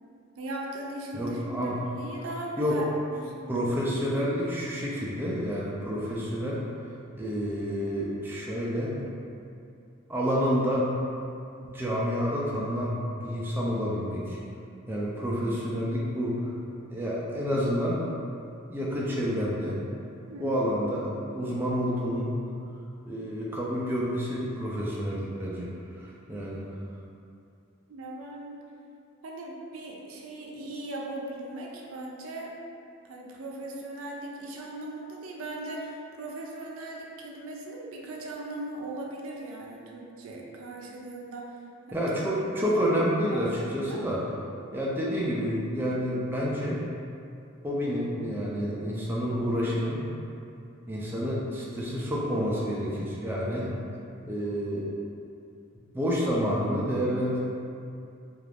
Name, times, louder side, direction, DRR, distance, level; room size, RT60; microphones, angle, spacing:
voice 1, 0.4-2.9 3.1-3.7 20.3-20.7 27.9-28.6 29.2-32.5 33.0-41.6 41.9-42.0 42.9-43.0 43.3-44.0, right 2 dB, 90° right, -1 dB, 0.4 m, -38 dB
voice 2, 1.1-1.8 2.6-2.8 3.5-6.6 7.1-9.1 10.1-10.9 11.6-14.4 14.9-16.5 16.9-18.0 18.7-19.7 20.4-22.3 23.1-25.7 26.3-26.6 41.9-44.2 44.7-46.8 47.6-50.0 50.9-53.7 54.3-54.9 55.9-57.4, equal, 10° right, -6 dB, 0.3 m, -29 dB
2.4 x 2.4 x 3.2 m, 2.5 s
head